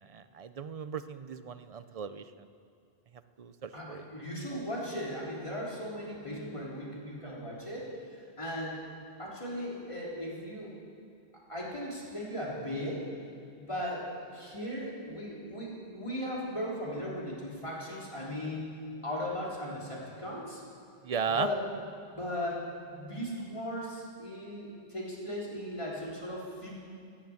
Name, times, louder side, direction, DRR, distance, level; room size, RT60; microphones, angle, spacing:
voice 1, 0.0-2.2 3.4-4.0 21.0-21.5, right 6 dB, 45° right, 11 dB, 0.6 m, -36 dB
voice 2, 3.7-7.9 8.4-8.9 9.2-10.7 11.5-13.1 13.5-18.7 19.0-20.6 21.3-21.6 22.1-26.7, left 1 dB, 30° left, -5 dB, 3.5 m, -37 dB
17.5 x 10.5 x 7.2 m, 2.4 s
omnidirectional pair, 1.0 m